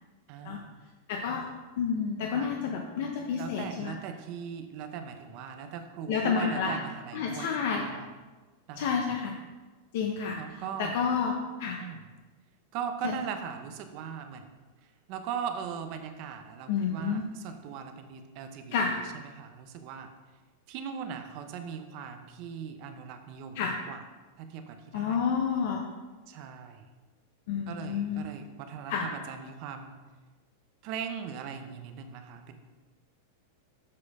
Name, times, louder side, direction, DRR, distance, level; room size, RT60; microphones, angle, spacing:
voice 1, 0.3-0.6 2.3-2.5 3.4-8.1 8.7-9.0 10.4-11.0 11.8-12.0 12.7-14.5 15.1-20.1 20.7-24.0 24.4-25.2 26.3-26.8 27.7-29.9 30.8-32.5, right 7 dB, 35° right, 7 dB, 0.6 m, -39 dB
voice 2, 1.1-1.5 1.8-3.9 6.1-6.8 7.1-7.9 8.8-9.3 9.9-10.4 10.8-11.8 13.0-13.2 16.7-17.2 18.7-19.0 23.5-23.8 24.9-25.9 27.5-28.2 28.9-29.0, left 6 dB, 50° left, 2 dB, 0.6 m, -29 dB
7.5 x 4.3 x 4.8 m, 1.3 s
supercardioid pair, 175°, 0 cm